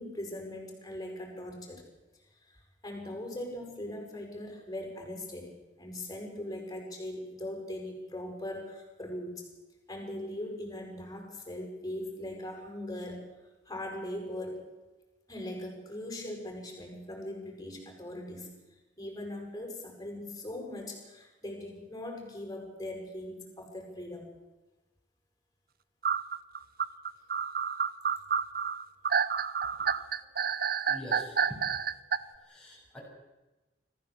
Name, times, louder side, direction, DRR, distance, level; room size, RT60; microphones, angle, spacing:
voice 1, 0.0-1.8 2.5-9.5 9.9-13.2 13.7-14.7 15.3-18.5 19.0-24.3, left 1 dB, 20° left, 2 dB, 7.2 m, -40 dB
sound 1, 26.0-32.2, right 7 dB, 55° right, 0.9 m, -29 dB
voice 2, 29.6-30.3 30.9-31.6 31.9-33.0, equal, 5° left, -5 dB, 7.8 m, -47 dB
25.0 x 15.5 x 8.3 m, 1.1 s
head